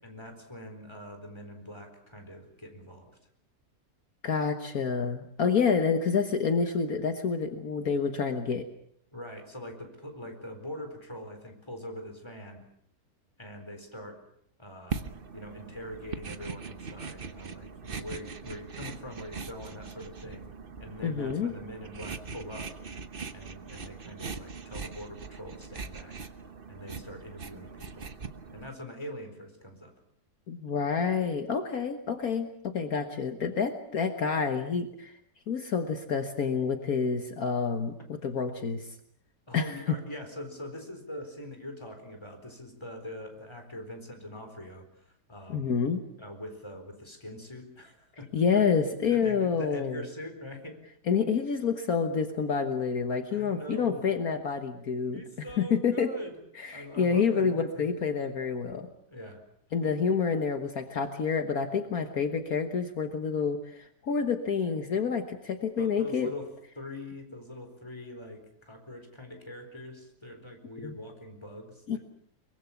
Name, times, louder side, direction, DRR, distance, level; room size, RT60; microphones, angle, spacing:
voice 1, 0.0-3.2 9.1-12.6 13.4-14.2 14.6-15.0 15.3-20.5 20.8-22.8 23.3-26.2 26.7-28.1 28.5-29.9 39.5-45.7 46.2-48.6 49.1-50.8 53.3-54.0 55.1-56.4 56.7-58.0 59.1-59.4 65.8-66.5 66.8-72.0, left 1 dB, 15° left, 4 dB, 4.3 m, -43 dB
voice 2, 4.2-8.7 21.0-21.5 30.5-35.1 35.5-38.9 39.5-39.8 45.5-46.0 48.3-50.0 51.1-55.2 55.6-56.1 56.6-58.9 59.7-66.3 70.8-70.9 71.9-72.0, left 6 dB, 60° left, 6 dB, 1.8 m, -28 dB
sound 1, 14.9-28.7, right 5 dB, 35° right, 1.1 m, -41 dB
23.5 x 22.5 x 7.1 m, 0.69 s
omnidirectional pair, 1.8 m